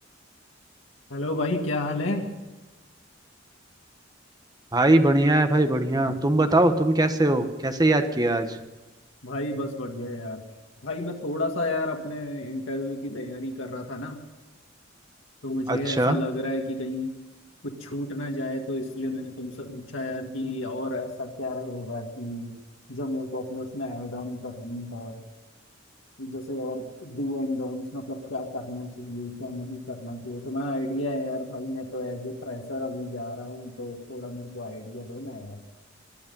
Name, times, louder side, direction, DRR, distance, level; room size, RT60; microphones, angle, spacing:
voice 1, 1.1-2.3 9.2-10.4 10.8-14.2 15.4-17.1 17.6-22.6 22.9-25.2 26.2-35.6, left 1 dB, 80° left, 1 dB, 1.9 m, -32 dB
voice 2, 4.7-8.6 15.7-16.2, right 1 dB, 20° right, 7 dB, 1.2 m, -21 dB
21.0 x 12.0 x 5.5 m, 1.2 s
head